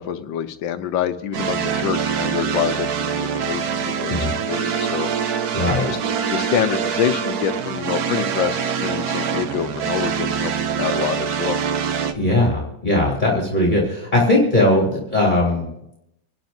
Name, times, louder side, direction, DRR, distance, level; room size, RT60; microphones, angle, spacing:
voice 1, 0.0-4.1 4.5-5.1 5.9-6.0 6.3-10.5 10.8-11.6, left 10 dB, 90° left, 10 dB, 1.5 m, -26 dB
sound 1, 1.3-12.1, right 7 dB, 60° right, 1.2 m, -24 dB
voice 2, 5.5-6.0 12.1-15.6, left 1 dB, 25° left, -4 dB, 2.9 m, -19 dB
27.0 x 11.5 x 2.7 m, 0.83 s
omnidirectional pair, 2.0 m